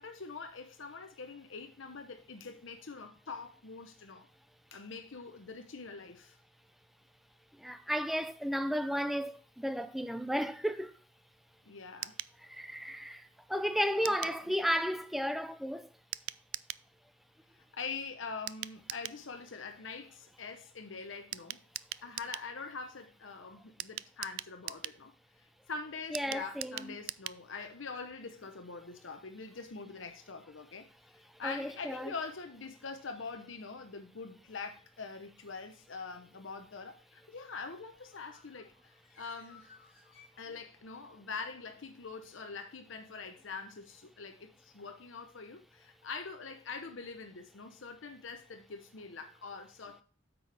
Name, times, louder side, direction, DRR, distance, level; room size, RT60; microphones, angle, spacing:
voice 1, 0.0-4.3 4.7-6.4 11.7-12.2 13.9-14.5 17.6-21.6 22.0-39.7 40.4-50.0, left 4 dB, 65° left, 0.8 m, -44 dB
voice 2, 7.6-10.9 12.4-15.9 26.1-26.9 31.4-32.1, equal, ahead, 0.4 m, -33 dB
sound 1, 12.0-12.4 14.0-14.4 16.1-16.9 18.5-19.2 21.3-22.5 23.8-25.0 26.1-27.4 27.7-27.8 28.1-28.2, right 15 dB, 65° right, 0.3 m, -41 dB
Bird, 37.9-40.9, left 4 dB, 50° left, 2.9 m, -60 dB
8.8 x 6.1 x 3.4 m
head